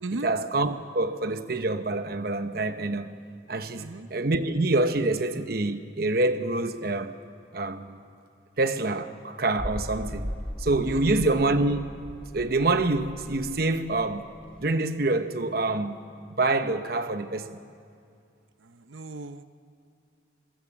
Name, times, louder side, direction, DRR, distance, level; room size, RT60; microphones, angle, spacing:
voice 1, 0.1-3.1 3.5-7.1 7.5-8.0 8.6-10.3 10.6-11.9 12.3-14.3 14.6-16.0 16.3-17.6, right 2 dB, 50° right, 1.0 m, -26 dB
voice 2, 3.8-4.1 10.9-11.3 18.6-19.4, right 2 dB, 90° right, 0.8 m, -37 dB
sound 1, 9.6-14.7, equal, 5° left, 1.0 m, -38 dB
26.0 x 23.0 x 7.3 m
head